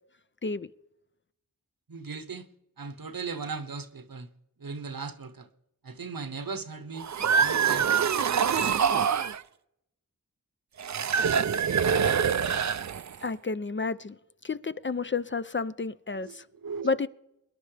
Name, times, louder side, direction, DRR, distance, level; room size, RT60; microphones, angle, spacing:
voice 1, 1.9-2.5 2.8-4.3 4.6-5.5 5.8-7.1 7.4-7.9 8.3-8.8 16.1-16.9, right 4 dB, 70° right, 1.1 m, -38 dB
sound 1, 7.0-9.4 10.8-13.2, right 7 dB, 50° right, 0.5 m, -25 dB
voice 2, 13.2-14.2 14.4-16.4 16.8-17.1, left 4 dB, 35° left, 0.5 m, -31 dB
24.0 x 10.5 x 3.3 m
wide cardioid pair, 50°, 36 cm